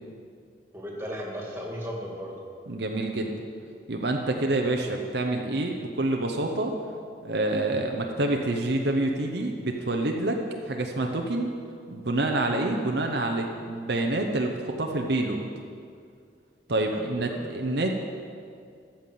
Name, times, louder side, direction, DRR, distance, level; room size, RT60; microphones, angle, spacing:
voice 1, 0.7-2.3 16.9-17.5, equal, 15° right, -2 dB, 2.1 m, -36 dB
voice 2, 2.7-3.5 3.9-6.7 7.2-10.4 10.7-11.5 11.9-15.4 16.7-17.9, right 2 dB, 65° right, 2 dB, 0.8 m, -27 dB
14.0 x 5.8 x 7.6 m, 2.3 s
head